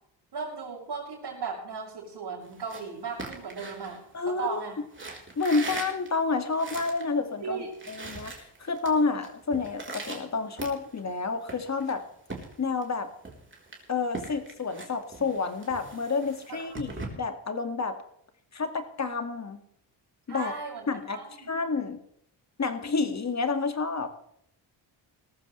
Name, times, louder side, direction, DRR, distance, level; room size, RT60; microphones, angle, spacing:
voice 1, 0.3-4.8 7.4-7.7 16.5-16.7 20.3-21.5, right 5 dB, 60° right, -5 dB, 5.1 m, -36 dB
sound 1, 2.4-4.5 4.9-7.1 7.4-7.5 7.7-8.9 9.2-11.1 11.5-12.9 13.2-17.1, right 3 dB, 25° right, 3.9 m, -41 dB
voice 2, 4.1-4.7 5.4-12.0 12.6-13.1 13.9-18.0 18.5-19.6 20.3-20.5 20.9-21.2 21.5-22.0 22.6-24.1, left 4 dB, 35° left, 7 dB, 2.1 m, -29 dB
18.0 x 14.5 x 3.3 m, 0.71 s
cardioid pair, 100°, 45 cm